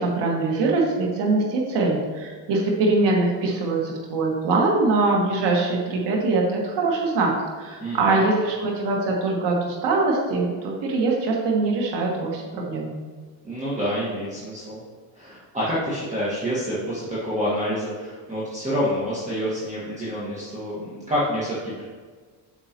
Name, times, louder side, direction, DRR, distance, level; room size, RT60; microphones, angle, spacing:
voice 1, 0.0-7.3 7.6-13.0, right 3 dB, 65° right, -1 dB, 1.9 m, -23 dB
voice 2, 7.8-8.2 13.4-14.8 15.1-21.8, equal, 15° right, -9 dB, 1.7 m, -27 dB
9.0 x 6.7 x 3.0 m, 1.5 s
cardioid pair, 150°, 45 cm